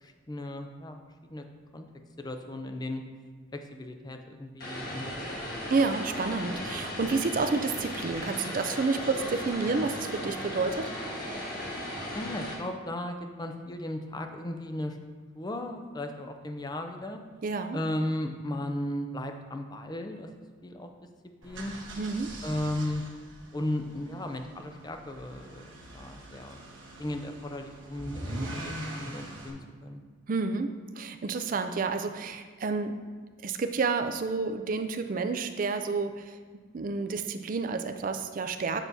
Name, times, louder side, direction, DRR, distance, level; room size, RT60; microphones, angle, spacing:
voice 1, 0.0-1.0 1.2-1.4 1.7-1.9 2.2-3.0 3.5-5.4 12.1-15.0 15.3-17.2 17.7-20.3 20.6-20.9 21.4-21.7 22.4-23.0 23.5-26.6 27.0-28.7 29.0-30.0, left 1 dB, 20° left, 5 dB, 0.5 m, -35 dB
Vehicle, 4.6-12.5, left 1 dB, 50° left, 1.4 m, -36 dB
voice 2, 5.7-10.9 17.4-17.8 22.0-22.3 30.3-30.7 31.0-33.0 33.4-36.4 36.7-38.8, right 4 dB, 45° right, 8 dB, 0.4 m, -30 dB
sound 1, 21.4-29.5, right 1 dB, 75° right, 1.3 m, -42 dB
8.8 x 6.0 x 2.7 m, 1.5 s
head